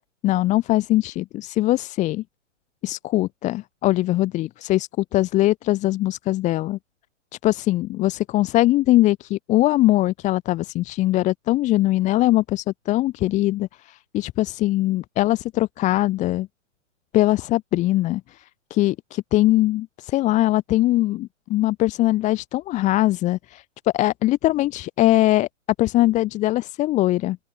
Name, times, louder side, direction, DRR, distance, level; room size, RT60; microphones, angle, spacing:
voice 1, 0.2-2.2 2.8-6.8 7.4-16.5 17.1-18.4 18.7-23.6 23.9-25.5 25.8-27.4, left 16 dB, 20° left, 1.0 m, -21 dB
open air
figure-of-eight pair, 125°, 38 cm